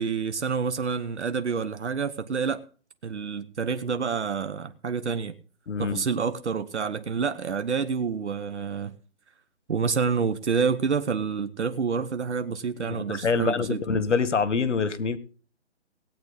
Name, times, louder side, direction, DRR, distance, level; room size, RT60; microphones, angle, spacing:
voice 1, 0.0-2.6 3.0-5.4 5.8-8.9 9.7-13.8, right 5 dB, 75° right, 1.2 m, -28 dB
voice 2, 5.7-6.1 12.9-15.2, left 5 dB, 90° left, 1.5 m, -25 dB
18.5 x 8.8 x 4.0 m
hypercardioid pair, 175°, 35 cm